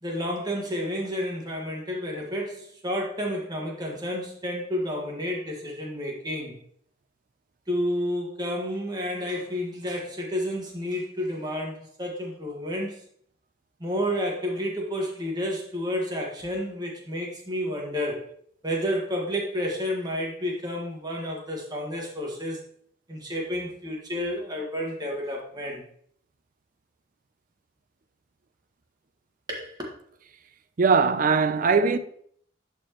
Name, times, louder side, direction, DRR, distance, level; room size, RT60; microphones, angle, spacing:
voice 1, 0.0-6.5 7.7-12.9 13.8-18.2 18.6-22.6 23.1-25.8 29.5-29.7, equal, 25° right, 1.6 m, -30 dB
voice 2, 30.8-32.0, right 5 dB, 50° right, 0.5 m, -20 dB
11.0 x 4.5 x 3.0 m
head